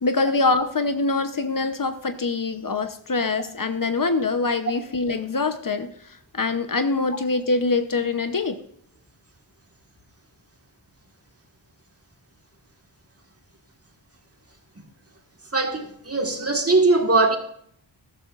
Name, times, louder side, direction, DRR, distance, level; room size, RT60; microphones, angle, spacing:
voice 1, 0.0-8.6, left 3 dB, 45° left, 9 dB, 0.9 m, -24 dB
voice 2, 15.5-17.4, right 3 dB, 30° right, 4 dB, 1.8 m, -20 dB
13.5 x 12.0 x 2.5 m, 0.67 s
cardioid pair, 45°, 44 cm